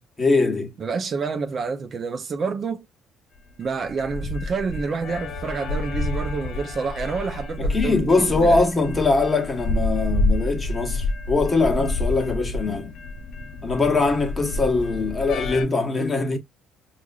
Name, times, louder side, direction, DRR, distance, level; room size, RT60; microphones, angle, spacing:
voice 1, 0.2-0.7 7.6-12.9 13.6-16.4, left 3 dB, 20° left, 1.2 m, -22 dB
voice 2, 0.8-2.9 3.6-8.6, right 5 dB, 45° right, 0.5 m, -28 dB
sound 1, 3.5-15.7, left 2 dB, 65° left, 0.5 m, -28 dB
4.7 x 2.5 x 2.3 m
cardioid pair, 100°, 0 cm